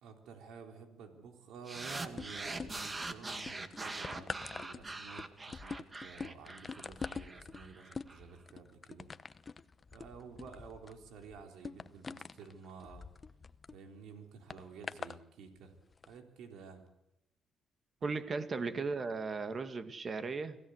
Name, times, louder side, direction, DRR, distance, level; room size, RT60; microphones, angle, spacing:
voice 1, 0.0-9.1 9.9-13.1 13.7-15.7 16.1-16.8, right 5 dB, 85° right, 5 dB, 3.7 m, -51 dB
sound 1, 1.7-8.2, right 2 dB, 25° right, 2.0 m, -43 dB
sound 2, 2.0-3.0 3.4-13.8 14.5-15.2 15.9-16.1, left 4 dB, 35° left, 0.8 m, -45 dB
voice 2, 18.0-20.6, right 4 dB, 40° right, 9 dB, 2.2 m, -36 dB
25.5 x 16.5 x 8.2 m, 0.91 s
cardioid pair, 90°, 0 cm